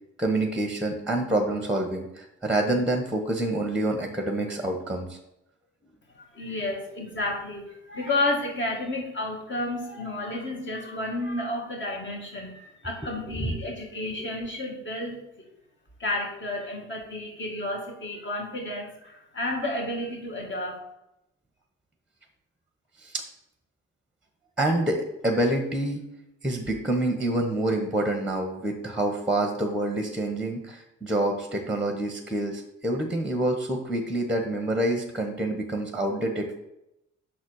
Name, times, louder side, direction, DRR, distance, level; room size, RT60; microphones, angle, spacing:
voice 1, 0.2-5.2 13.3-13.6 23.0-23.2 24.6-26.0 26.4-36.5, right 1 dB, 5° right, 4 dB, 1.1 m, -27 dB
voice 2, 6.2-15.2 16.0-20.8, left 2 dB, 40° left, -1 dB, 2.2 m, -31 dB
6.0 x 4.1 x 6.4 m, 0.84 s
cardioid pair, 90°, 30 cm